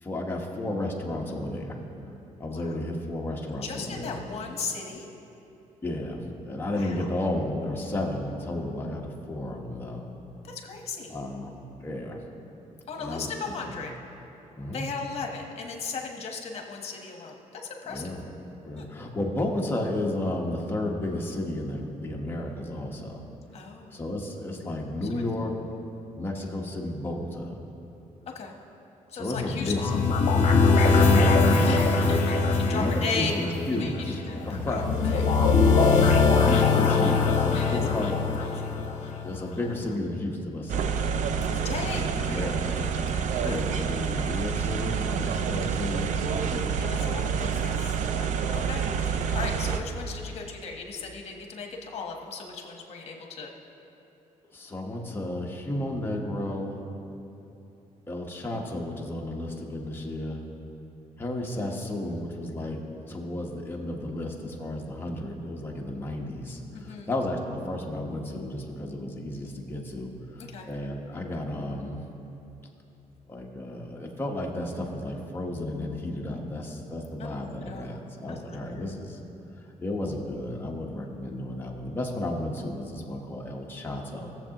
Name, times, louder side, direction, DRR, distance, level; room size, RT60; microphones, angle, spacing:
voice 1, 0.0-1.8 2.4-4.2 5.8-10.1 11.1-11.5 11.8-12.2 13.0-13.8 14.6-14.9 17.9-18.2 18.6-23.2 23.9-25.5 26.2-27.6 29.1-30.1 30.9-32.1 32.7-34.8 35.8-38.2 39.2-43.0 43.4-46.1 46.5-46.9 54.5-56.8 58.1-60.4 61.2-62.8 63.1-72.0 73.3-79.2 79.6-84.3, left 1 dB, 15° left, -1 dB, 1.1 m, -33 dB
voice 2, 3.5-5.1 6.7-7.1 10.4-11.1 12.9-14.0 14.7-18.0 18.8-18.9 23.5-24.0 25.1-25.2 28.3-28.5 29.1-29.7 31.6-33.3 33.8-35.6 37.5-37.8 38.4-38.7 41.4-42.6 42.9-43.6 46.7-53.5 66.7-67.1 70.4-70.7 77.2-78.0 78.3-78.4 78.7-78.8, left 4 dB, 50° left, 2 dB, 1.2 m, -37 dB
sound 1, 29.4-39.5, left 4 dB, 70° left, 0.8 m, -22 dB
sound 2, 40.7-49.8, right 6 dB, 70° right, 0.5 m, -28 dB
17.5 x 7.3 x 2.9 m, 3.0 s
cardioid pair, 145°, 13 cm